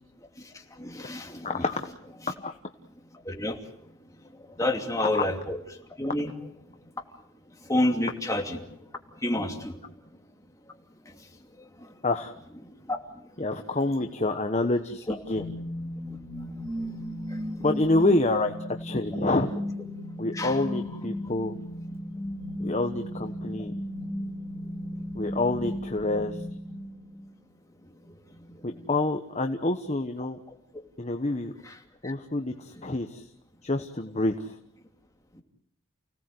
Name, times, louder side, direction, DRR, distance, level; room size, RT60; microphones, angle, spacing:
voice 1, 0.8-1.6 3.3-3.6 4.6-5.6 6.0-6.3 7.7-8.6 9.2-9.8 12.9-13.0 15.1-15.2 16.8-16.9 17.3-17.4 20.3-20.6 32.0-32.1, left 1 dB, 15° left, 2 dB, 2.8 m, -28 dB
voice 2, 1.4-1.9 2.3-2.6 4.6-4.7 4.9-5.2 12.0-12.3 13.4-15.4 17.6-19.5 20.2-21.6 22.6-23.7 25.1-26.6 28.6-30.4 31.0-31.5 32.0-33.3 33.6-34.6, left 2 dB, 30° left, 6 dB, 1.2 m, -27 dB
sound 1, 15.3-27.3, left 1 dB, 10° right, 3.2 m, -35 dB
29.5 x 18.0 x 7.9 m, 0.73 s
head